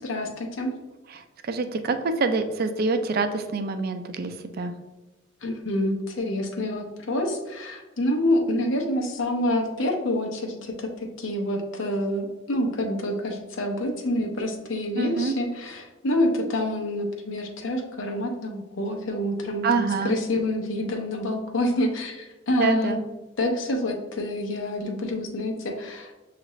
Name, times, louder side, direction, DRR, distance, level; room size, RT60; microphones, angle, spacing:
voice 1, 0.0-0.7 5.4-23.0 23.4-26.2, left 1 dB, 80° left, 2 dB, 0.7 m, -27 dB
voice 2, 1.1-4.7 15.0-15.3 19.6-20.1 22.6-23.0, right 4 dB, 50° right, 8 dB, 0.4 m, -26 dB
6.4 x 2.5 x 3.0 m, 1.1 s
head